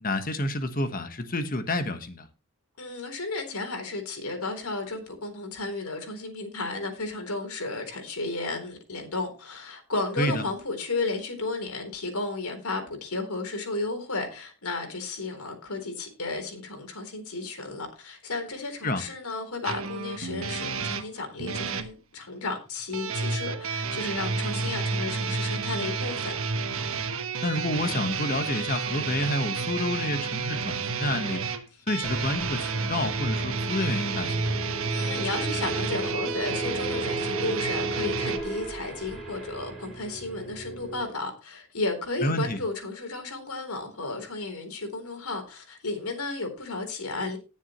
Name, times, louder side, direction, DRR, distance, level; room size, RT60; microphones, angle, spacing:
voice 1, 0.0-2.3 10.2-10.4 18.8-19.0 27.4-31.4 31.9-34.6 42.2-42.6, left 1 dB, 40° left, 1.4 m, -29 dB
voice 2, 2.8-26.3 34.9-47.4, left 3 dB, 85° left, 3.9 m, -33 dB
sound 1, 19.6-21.9 22.9-38.4, right 4 dB, 70° right, 1.4 m, -30 dB
sound 2, 32.0-41.0, right 2 dB, ahead, 5.5 m, -36 dB
19.5 x 7.3 x 3.1 m
head